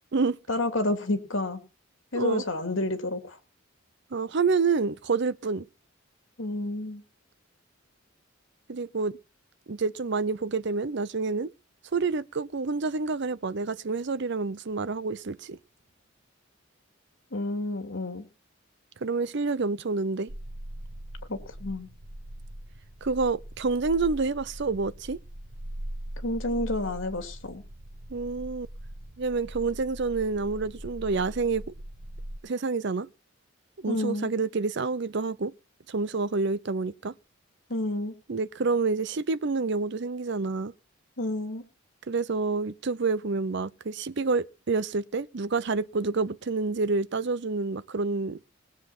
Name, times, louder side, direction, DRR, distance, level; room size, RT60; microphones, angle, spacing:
voice 1, 0.5-1.6 2.1-3.4 6.4-7.0 17.3-18.3 21.3-21.9 26.2-27.6 33.9-34.3 37.7-38.1 41.2-41.6, left 2 dB, 70° left, 2.6 m, -30 dB
voice 2, 4.1-5.7 8.7-9.2 9.7-11.5 11.9-15.6 19.0-20.3 23.0-25.2 28.1-28.7 29.2-31.6 32.4-33.1 33.8-35.5 35.9-37.1 38.3-40.7 42.1-48.4, right 4 dB, 55° right, 0.6 m, -28 dB
sound 1, 20.3-32.4, right 1 dB, 75° right, 1.6 m, -41 dB
20.0 x 7.5 x 6.0 m
head